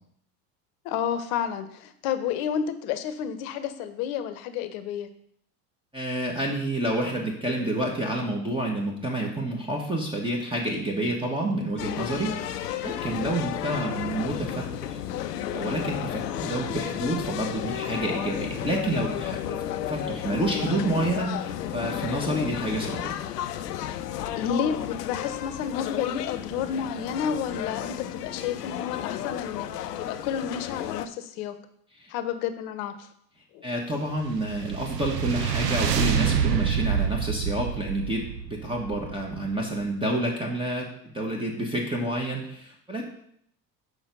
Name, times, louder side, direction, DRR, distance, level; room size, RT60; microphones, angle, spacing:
voice 1, 0.8-5.1 24.4-31.5 32.1-33.1 33.5-33.7, left 8 dB, 60° left, 11 dB, 1.0 m, -31 dB
voice 2, 5.9-15.0 15.5-23.2 32.0-32.1 33.6-43.0, right 1 dB, 10° right, -1 dB, 1.5 m, -29 dB
sound 1, 11.8-31.1, left 11 dB, 80° left, 0.6 m, -33 dB
sound 2, 34.1-39.5, right 8 dB, 80° right, 0.8 m, -27 dB
6.8 x 4.9 x 5.4 m, 0.70 s
hypercardioid pair, 75°, 48 cm